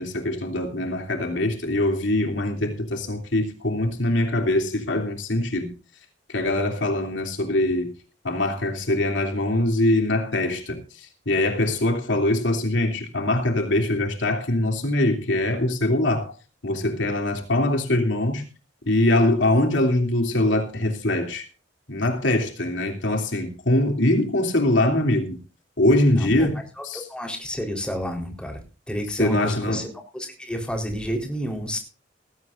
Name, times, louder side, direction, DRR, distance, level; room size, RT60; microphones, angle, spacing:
voice 1, 0.0-5.7 6.3-8.0 8.2-10.8 11.2-16.3 16.6-18.4 18.8-21.5 21.9-25.4 25.8-27.0 29.2-29.8, left 1 dB, 70° left, 3.2 m, -23 dB
voice 2, 26.1-28.6 28.9-31.8, equal, 5° left, 4.0 m, -30 dB
18.5 x 16.0 x 2.6 m
head